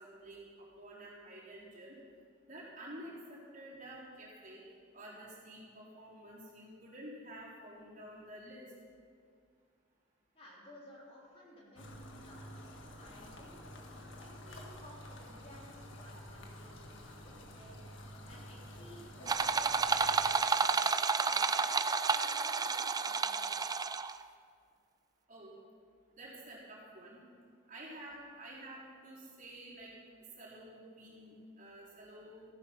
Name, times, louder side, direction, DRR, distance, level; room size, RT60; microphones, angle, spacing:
voice 1, 0.0-2.0 2.4-4.6 4.9-8.7 25.3-25.5 26.1-27.2 27.7-29.9 30.4-32.5, right 1 dB, 40° right, -6 dB, 4.0 m, -50 dB
voice 2, 10.3-13.5 14.2-17.8 18.2-20.8 21.3-23.8, equal, 30° left, -4 dB, 3.1 m, -56 dB
sound 1, 11.8-20.3, left 1 dB, 75° left, 1.7 m, -50 dB
sound 2, 19.3-24.2, right 5 dB, 20° right, 0.3 m, -30 dB
14.5 x 12.0 x 5.9 m, 2.2 s
head